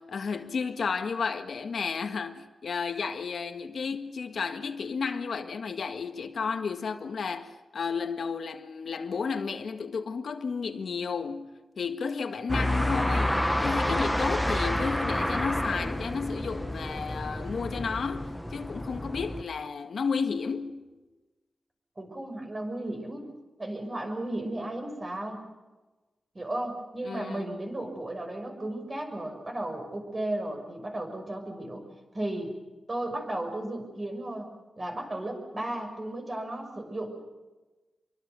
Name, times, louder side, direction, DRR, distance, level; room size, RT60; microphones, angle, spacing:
voice 1, 0.0-20.9 27.0-27.5, left 5 dB, 70° left, 1.8 m, -32 dB
sound 1, 12.5-19.4, left 1 dB, 5° left, 1.1 m, -29 dB
voice 2, 22.0-23.3 23.6-25.4 26.3-31.8 32.1-32.5 32.9-34.5 34.8-37.2, right 1 dB, 30° right, 6.2 m, -34 dB
27.0 x 23.5 x 7.0 m
wide cardioid pair, 130°, 0 cm